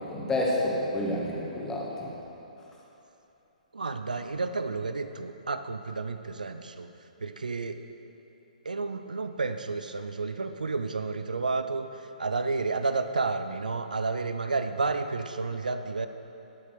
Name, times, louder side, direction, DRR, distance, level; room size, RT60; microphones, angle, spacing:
voice 1, 0.0-2.1, left 1 dB, 10° left, -3 dB, 2.2 m, -29 dB
voice 2, 3.7-6.9 7.2-7.8 8.6-16.1, right 3 dB, 70° right, 9 dB, 0.8 m, -31 dB
18.0 x 7.5 x 6.7 m, 3.0 s
figure-of-eight pair, 125°, 4 cm